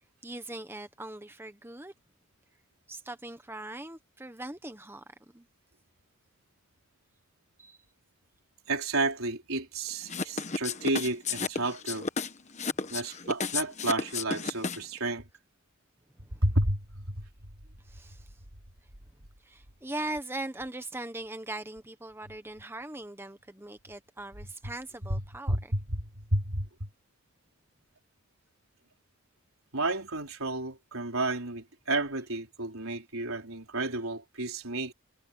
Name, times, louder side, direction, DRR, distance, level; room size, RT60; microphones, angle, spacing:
voice 1, 0.2-1.9 2.9-5.0 5.3-5.5 7.6-7.8 12.6-12.8 16.3-16.4 17.8-18.3 19.4-25.7, right 2 dB, 10° right, 1.2 m, -40 dB
voice 2, 8.7-12.1 12.9-15.3 16.4-17.3 25.1-25.2 25.5-26.7 29.7-34.9, right 2 dB, 85° right, 4.1 m, -31 dB
sound 1, 10.1-15.0, left 4 dB, 35° left, 1.3 m, -32 dB
head